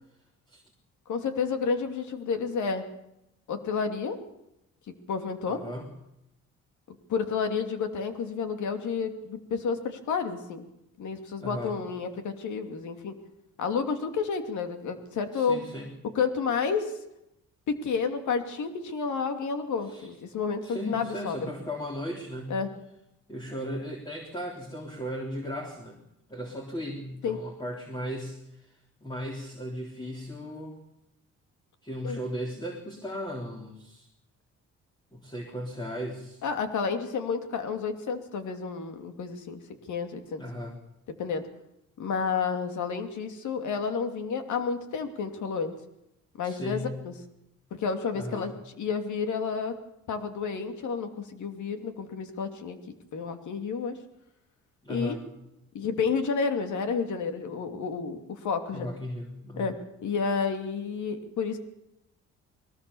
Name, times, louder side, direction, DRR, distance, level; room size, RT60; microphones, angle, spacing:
voice 1, 1.1-2.8 3.5-4.2 5.1-5.6 6.9-10.6 11.0-13.1 13.6-15.6 16.1-16.9 17.7-21.4 22.5-22.7 27.2-27.4 32.0-32.2 36.4-39.6 39.9-40.4 41.2-41.5 42.0-45.7 46.4-47.1 47.7-48.5 48.8-49.7 50.1-52.8 53.1-54.0 54.9-55.2 55.7-58.9 59.6-59.7 60.0-61.6, left 5 dB, 75° left, 7 dB, 2.8 m, -30 dB
voice 2, 5.5-5.9 11.4-11.8 15.3-15.9 19.8-20.1 20.6-22.6 23.3-26.0 26.3-30.8 31.8-34.1 35.1-36.4 40.4-40.8 46.4-47.0 48.1-48.5 54.8-55.3 58.7-59.7, equal, 15° left, 1 dB, 3.6 m, -36 dB
22.0 x 18.5 x 7.1 m, 0.85 s
cardioid pair, 90°, 30 cm